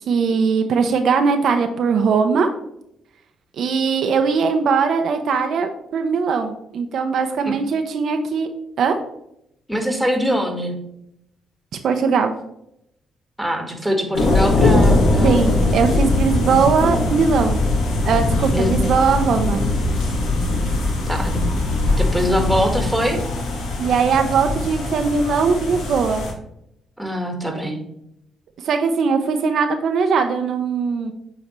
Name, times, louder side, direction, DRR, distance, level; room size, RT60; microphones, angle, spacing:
voice 1, 0.1-2.5 3.6-8.5 8.8-9.0 11.8-12.3 15.2-17.6 18.0-19.6 23.8-26.2 28.6-31.1, right 5 dB, 65° right, 6 dB, 0.6 m, -20 dB
voice 2, 9.7-10.8 13.4-15.6 16.4-16.6 18.5-18.9 21.1-21.4 21.9-23.2 27.0-27.8, equal, 5° right, 3 dB, 1.5 m, -23 dB
sound 1, 14.1-26.3, left 2 dB, 80° left, 1.4 m, -20 dB
8.6 x 3.8 x 3.1 m, 0.78 s
cardioid pair, 90°, 0 cm